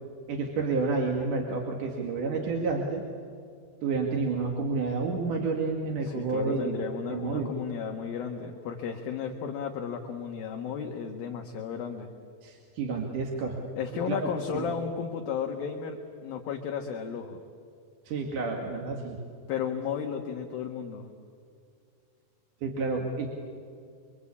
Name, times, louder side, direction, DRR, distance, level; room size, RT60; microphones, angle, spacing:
voice 1, 0.3-3.0 3.8-7.5 12.4-13.6 14.1-14.2 14.5-14.7 18.1-19.2 22.6-23.3, right 4 dB, 55° right, 0 dB, 3.4 m, -30 dB
voice 2, 6.0-12.1 13.8-16.0 16.2-17.4 19.5-21.1, left 7 dB, 65° left, 2 dB, 3.1 m, -34 dB
27.0 x 25.0 x 8.5 m, 2.3 s
omnidirectional pair, 5.0 m